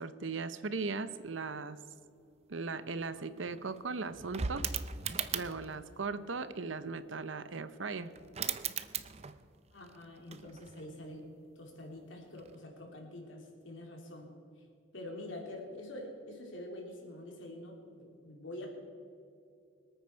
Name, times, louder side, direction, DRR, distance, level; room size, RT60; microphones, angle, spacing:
voice 1, 0.0-1.8 2.5-4.6 5.3-8.1, right 4 dB, 75° right, 13 dB, 0.8 m, -38 dB
sound 1, 2.9-3.0 3.2-5.8 7.8-7.9 8.2-9.5 9.8-11.0 12.4-12.6, right 7 dB, 30° right, 0.6 m, -39 dB
voice 2, 9.7-11.2 11.5-14.3 14.9-18.7, left 1 dB, 80° left, 0 dB, 3.2 m, -46 dB
25.0 x 9.1 x 4.5 m, 2.6 s
head